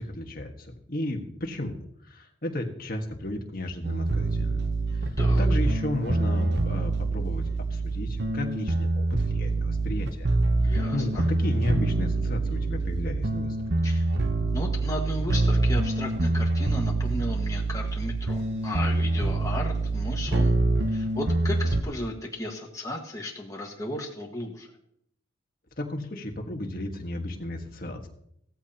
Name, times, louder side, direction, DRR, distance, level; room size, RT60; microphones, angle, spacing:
voice 1, 0.0-4.7 4.9-10.4 10.6-13.6 25.8-28.1, left 1 dB, 45° left, 3 dB, 1.6 m, -34 dB
sound 1, 3.8-21.8, right 2 dB, 55° right, 0.9 m, -25 dB
voice 2, 10.6-11.2 13.8-14.1 14.5-20.5 20.9-24.7, left 1 dB, 15° left, -1 dB, 1.6 m, -35 dB
16.0 x 14.0 x 2.9 m, 0.74 s
head